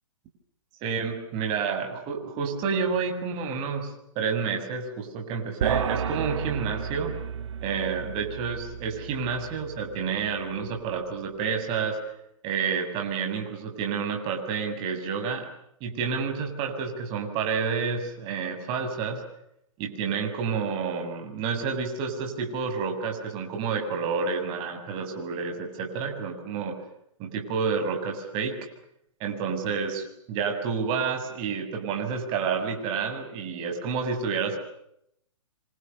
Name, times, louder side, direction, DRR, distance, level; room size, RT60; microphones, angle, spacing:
voice 1, 0.8-7.1 7.6-12.0 12.4-15.5 15.8-19.2 19.8-26.8 27.2-28.6 29.2-34.6, right 5 dB, 30° right, 4 dB, 7.1 m, -29 dB
sound 1, 5.6-11.1, right 8 dB, 60° right, 3.0 m, -33 dB
27.5 x 27.0 x 6.9 m, 0.76 s
hypercardioid pair, 140°, 17 cm